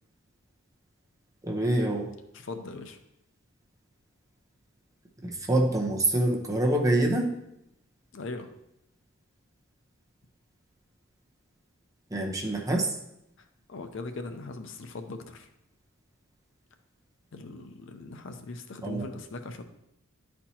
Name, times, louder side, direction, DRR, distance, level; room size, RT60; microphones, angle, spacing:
voice 1, 1.4-2.1 5.2-7.3 12.1-12.9 18.8-19.1, right 1 dB, 15° right, 0 dB, 0.9 m, -26 dB
voice 2, 2.3-3.0 8.1-8.5 13.7-15.5 17.3-19.6, left 3 dB, 65° left, 7 dB, 0.6 m, -40 dB
11.0 x 4.4 x 2.8 m, 0.82 s
head